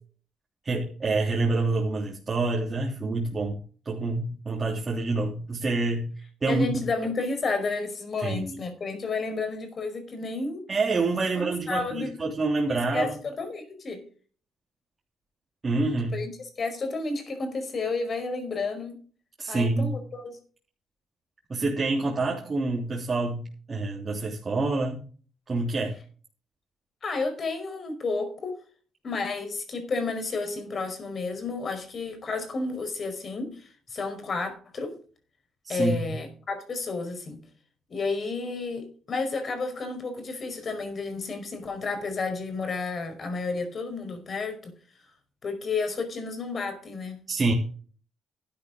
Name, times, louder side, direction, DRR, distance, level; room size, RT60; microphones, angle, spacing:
voice 1, 0.6-3.6 3.8-6.1 6.4-6.8 8.2-8.6 10.7-13.2 15.6-16.2 19.4-19.9 21.5-25.0 25.5-26.0 35.6-36.1 47.3-47.5, right 3 dB, 30° right, 3.2 m, -27 dB
voice 2, 6.5-10.6 11.4-12.1 12.7-14.0 16.1-16.3 16.6-19.0 19.5-20.3 27.0-28.6 29.0-34.9 35.7-37.4 37.9-44.7 45.4-47.2, left 3 dB, 45° left, 5.0 m, -31 dB
12.5 x 10.5 x 3.9 m
cardioid pair, 90°, 0 cm